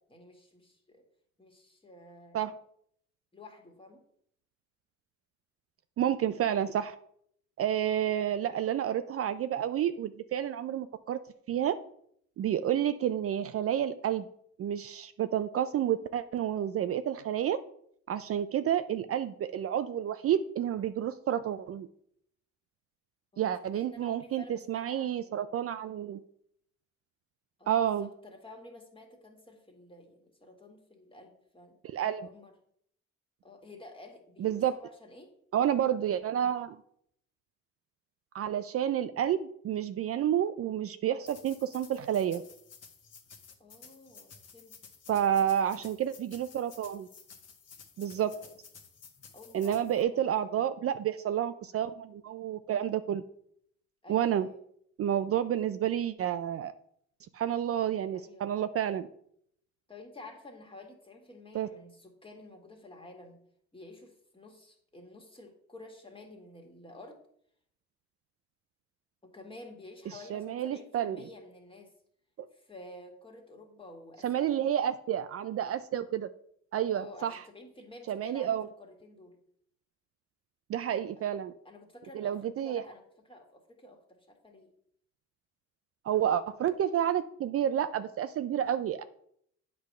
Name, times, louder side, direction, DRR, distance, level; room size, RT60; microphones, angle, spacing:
voice 1, 0.1-1.0 1.4-2.4 3.3-4.0 7.8-8.0 23.3-25.3 27.6-31.8 32.2-32.5 33.4-35.3 43.6-44.8 48.1-48.6 49.3-50.6 54.0-54.6 58.1-58.5 59.9-63.4 63.7-67.2 69.2-71.9 72.5-74.5 76.9-79.4 81.2-81.3 81.6-84.7, left 2 dB, 15° left, 2 dB, 1.8 m, -51 dB
voice 2, 6.0-6.9 7.6-11.2 11.5-11.8 12.4-14.3 14.6-17.6 18.1-21.9 23.4-26.2 27.7-28.1 31.8-32.3 34.4-34.7 35.5-36.8 38.3-42.4 45.1-47.1 48.0-48.3 49.5-53.2 54.1-54.5 55.0-56.7 57.3-59.1 61.5-61.7 70.1-71.2 72.4-72.5 74.2-76.3 76.7-77.4 78.1-78.7 80.7-81.5 82.1-82.8 86.0-89.0, right 10 dB, 50° right, 11 dB, 0.4 m, -30 dB
sound 1, 41.2-50.0, left 6 dB, 55° left, 1.3 m, -54 dB
8.2 x 3.4 x 6.5 m, 0.69 s
cardioid pair, 90°, 30 cm